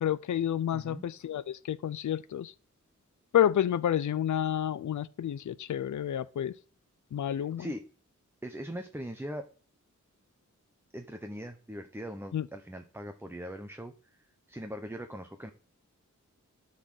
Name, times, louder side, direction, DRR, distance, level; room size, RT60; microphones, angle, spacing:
voice 1, 0.0-2.5 3.3-6.5 7.1-7.7 12.3-12.4, left 10 dB, 70° left, 0.5 m, -29 dB
voice 2, 0.7-1.0 7.3-7.9 8.4-9.5 10.9-14.2 14.5-15.5, equal, 10° right, 0.9 m, -41 dB
12.0 x 4.2 x 6.4 m
wide cardioid pair, 60°, 31 cm